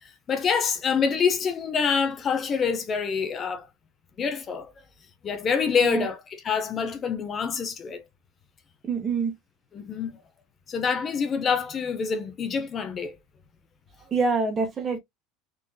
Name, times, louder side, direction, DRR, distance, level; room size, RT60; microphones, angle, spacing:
voice 1, 0.0-3.7 4.2-4.7 5.2-8.0 9.7-10.2 10.7-13.2, left 6 dB, 30° left, 0.6 m, -26 dB
voice 2, 8.8-9.3 14.1-15.0, right 4 dB, 25° right, 1.1 m, -25 dB
3.8 x 2.4 x 2.2 m
supercardioid pair, 125°, 0 cm